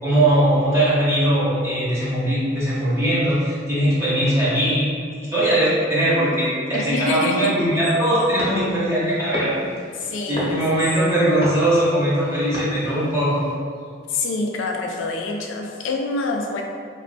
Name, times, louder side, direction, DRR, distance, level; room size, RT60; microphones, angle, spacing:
voice 1, 0.0-4.9 5.3-9.5 10.3-13.5, right 1 dB, 15° right, -9 dB, 0.7 m, -20 dB
voice 2, 6.7-7.5 10.0-10.6 14.1-16.6, left 3 dB, 80° left, 2 dB, 0.4 m, -26 dB
sound 1, 8.4-13.5, left 1 dB, 30° left, 0.7 m, -33 dB
3.2 x 2.2 x 2.5 m, 2.2 s
head